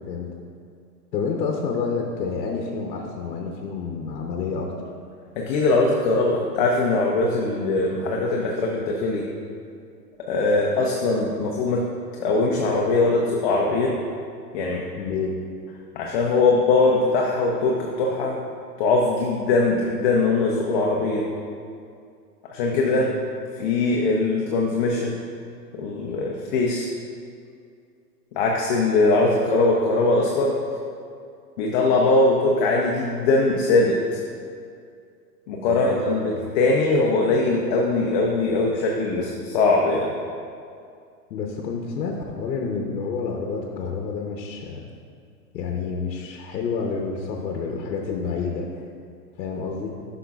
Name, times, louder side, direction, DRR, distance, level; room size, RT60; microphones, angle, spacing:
voice 1, 1.1-4.7 15.0-15.3 22.7-23.0 35.7-36.4 41.3-44.8 45.5-48.8 49.4-49.9, left 5 dB, 70° left, 0 dB, 0.9 m, -29 dB
voice 2, 5.4-9.2 10.2-11.8 12.2-13.9 14.5-14.9 16.0-18.3 18.8-21.2 22.5-23.0 23.6-25.1 25.8-26.9 28.4-30.5 31.6-34.0 35.5-40.1, left 3 dB, 30° left, -2 dB, 0.5 m, -21 dB
9.7 x 6.0 x 2.4 m, 2.3 s
hypercardioid pair, 140°, 49 cm